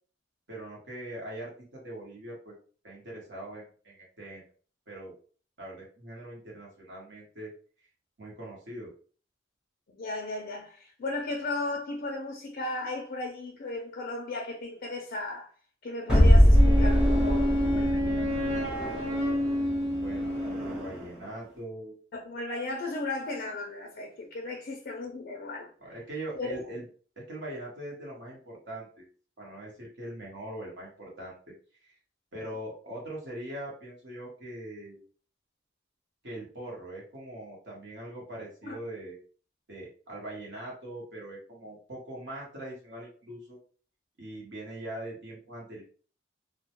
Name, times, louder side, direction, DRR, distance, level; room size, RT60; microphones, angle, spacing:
voice 1, 0.5-2.5 2.8-4.4 4.9-5.1 5.6-7.5 8.2-8.9 19.9-22.0 25.8-26.9 27.3-29.0 29.4-31.4 31.8-32.0 32.3-35.0 36.2-39.2 39.7-43.6 44.2-45.8, right 1 dB, 65° right, 1.0 m, -41 dB
voice 2, 9.9-15.5 15.8-18.5 22.1-25.9 26.4-26.6 38.6-38.8, left 2 dB, 50° left, 0.4 m, -36 dB
sound 1, 16.1-21.2, equal, 5° right, 0.7 m, -23 dB
Wind instrument woodwind instrument, 16.5-20.9, equal, 35° right, 0.9 m, -29 dB
2.1 x 2.1 x 2.8 m
head